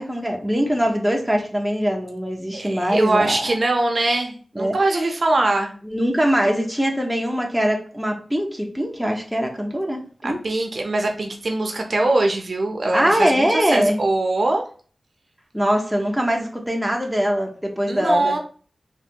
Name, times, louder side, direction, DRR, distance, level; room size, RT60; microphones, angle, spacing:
voice 1, 0.0-3.5 4.6-5.0 5.8-10.6 12.9-14.0 15.5-18.4, equal, 5° right, 0.7 m, -22 dB
voice 2, 2.5-5.7 10.2-14.6 17.9-18.4, right 2 dB, 60° right, 0.6 m, -22 dB
3.3 x 2.5 x 2.8 m
wide cardioid pair, 60°, 0 cm